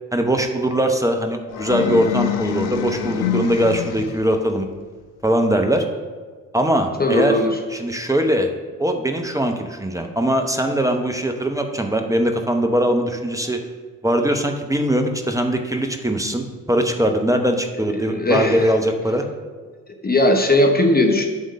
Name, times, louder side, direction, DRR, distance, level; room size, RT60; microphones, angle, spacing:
voice 1, 0.1-4.7 5.2-5.8 6.5-7.4 7.7-8.5 8.8-13.6 14.0-19.3, right 1 dB, 5° right, 4 dB, 0.8 m, -21 dB
sound 1, 1.5-4.4, left 11 dB, 60° left, 0.7 m, -26 dB
voice 2, 7.0-7.6 17.9-18.7 20.0-21.3, left 1 dB, 20° left, 4 dB, 0.9 m, -18 dB
8.4 x 3.7 x 6.3 m, 1.5 s
hypercardioid pair, 50°, 44 cm